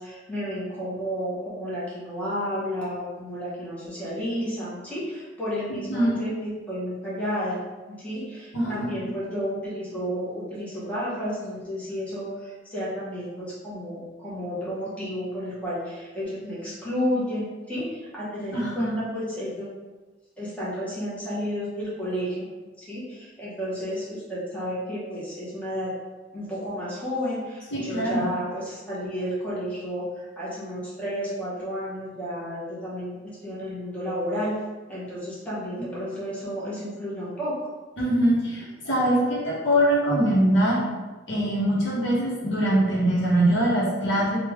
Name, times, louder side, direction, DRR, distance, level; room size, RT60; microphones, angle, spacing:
voice 1, 0.0-7.6 7.9-19.6 20.4-22.5 22.8-25.9 26.3-34.5 34.9-37.5, equal, 10° left, -9 dB, 1.1 m, -32 dB
voice 2, 18.5-18.9 27.7-28.2 38.0-40.8 41.3-44.4, right 1 dB, 70° left, -5 dB, 0.9 m, -22 dB
3.5 x 2.3 x 3.4 m, 1.2 s
head